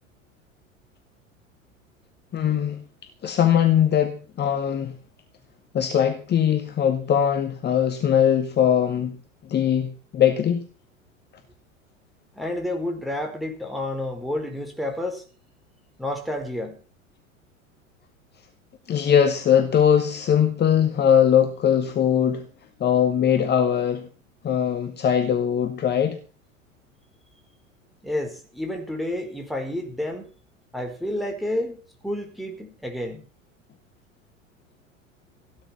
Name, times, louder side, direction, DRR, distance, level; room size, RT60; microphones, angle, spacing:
voice 1, 2.3-2.8 3.2-5.0 5.7-9.2 9.5-10.6 18.9-22.5 22.8-24.1 24.4-26.2, left 9 dB, 25° left, 1.9 m, -21 dB
voice 2, 12.4-15.2 16.0-16.8 28.0-30.3 30.7-33.2, left 1 dB, ahead, 4.8 m, -30 dB
17.0 x 10.5 x 5.8 m
figure-of-eight pair, 85°, 40 cm